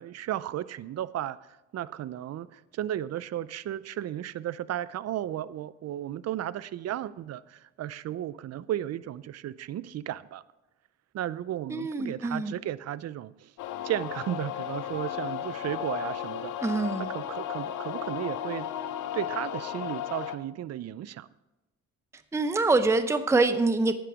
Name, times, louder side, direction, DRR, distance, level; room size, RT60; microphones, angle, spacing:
voice 1, 0.0-1.4 1.7-10.4 11.1-13.5 13.8-16.5 17.1-18.7 19.1-21.3, right 12 dB, 55° right, 18 dB, 0.5 m, -34 dB
voice 2, 11.7-12.5 16.6-17.1 22.3-23.9, right 3 dB, 10° right, 10 dB, 0.6 m, -25 dB
sound 1, 13.6-20.4, left 10 dB, 90° left, 0.7 m, -34 dB
10.0 x 9.0 x 4.8 m, 1.0 s
cardioid pair, 90°, 30 cm